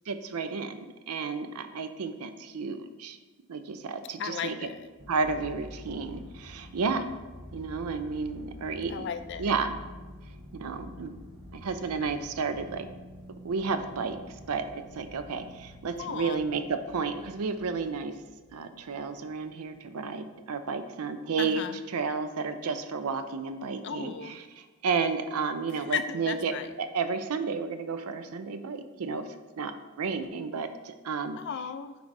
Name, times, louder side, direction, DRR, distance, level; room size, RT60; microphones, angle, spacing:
voice 1, 0.1-0.8 1.1-3.2 3.5-4.6 5.1-7.1 7.5-9.1 9.4-9.8 10.5-11.1 11.5-12.9 13.4-14.2 14.5-18.1 18.5-29.2 29.6-31.4, right 4 dB, 80° right, 9 dB, 0.5 m, -32 dB
voice 2, 4.2-4.9 8.9-9.5 16.0-16.4 21.4-21.8 23.8-24.4 25.7-26.7 31.4-31.9, left 7 dB, 50° left, 9 dB, 0.4 m, -35 dB
sound 1, 5.0-20.6 21.1-21.2, left 1 dB, 45° right, 1.1 m, -48 dB
9.2 x 4.7 x 2.6 m, 1.2 s
head